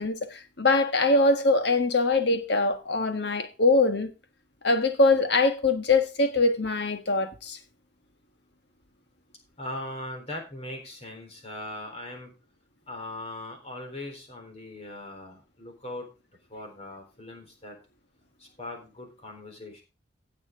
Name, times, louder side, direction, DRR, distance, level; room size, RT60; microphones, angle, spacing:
voice 1, 0.0-4.1 4.6-7.6, left 3 dB, 60° left, 1.5 m, -23 dB
voice 2, 9.6-12.3 12.9-16.1 16.5-17.8 18.4-19.8, left 1 dB, 35° left, 3.7 m, -39 dB
16.5 x 6.8 x 3.7 m
head